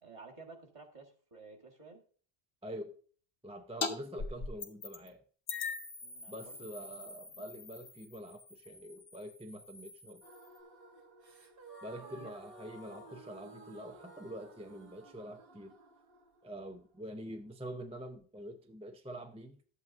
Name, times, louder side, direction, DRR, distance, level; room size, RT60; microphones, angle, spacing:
voice 1, 0.0-2.0 6.0-6.7 7.0-7.8 12.0-12.3 12.9-13.2, right 3 dB, 30° right, 1.4 m, -54 dB
voice 2, 2.6-3.0 3.4-5.2 6.3-10.2 11.8-15.7 16.4-19.6, equal, 10° right, 0.3 m, -45 dB
sound 1, 3.8-3.9 4.2-5.1 5.5-10.6, left 4 dB, 65° left, 1.1 m, -42 dB
sound 2, 10.2-18.2, right 2 dB, 65° right, 1.3 m, -55 dB
12.0 x 8.2 x 2.5 m
omnidirectional pair, 1.0 m